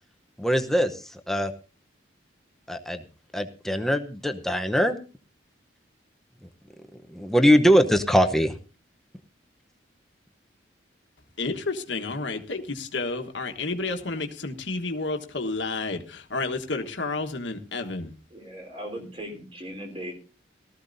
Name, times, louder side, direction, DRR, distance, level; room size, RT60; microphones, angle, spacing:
voice 1, 0.4-1.5 2.7-3.0 3.3-5.0 7.1-8.5, equal, ahead, 6 dB, 0.8 m, -22 dB
voice 2, 11.4-18.1, left 3 dB, 70° left, 5 dB, 1.4 m, -31 dB
voice 3, 18.3-20.1, equal, 30° right, 2 dB, 3.9 m, -38 dB
18.5 x 14.0 x 2.7 m, 0.34 s
head